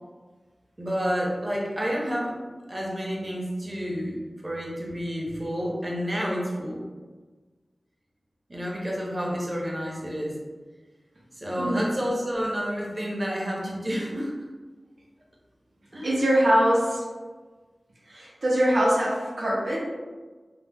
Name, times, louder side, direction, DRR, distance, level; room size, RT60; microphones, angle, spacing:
voice 1, 0.8-2.4 2.7-4.2 4.4-6.8 8.5-10.4 11.4-14.3 15.9-16.2, equal, 25° right, -3 dB, 0.7 m, -29 dB
voice 2, 16.0-17.0 18.1-19.8, equal, 80° right, -6 dB, 0.7 m, -22 dB
2.8 x 2.0 x 3.4 m, 1.3 s
wide cardioid pair, 85°, 0 cm